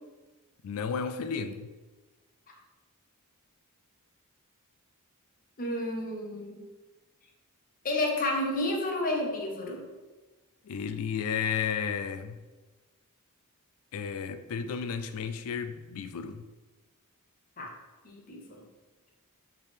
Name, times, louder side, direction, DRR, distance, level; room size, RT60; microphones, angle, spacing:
voice 1, 0.6-1.7 10.6-12.4 13.9-16.5, left 6 dB, 70° left, 0.3 m, -33 dB
voice 2, 5.6-6.6 7.8-9.9 17.6-17.7 18.0-18.6, left 1 dB, 40° left, 0.7 m, -31 dB
4.5 x 3.6 x 3.3 m
head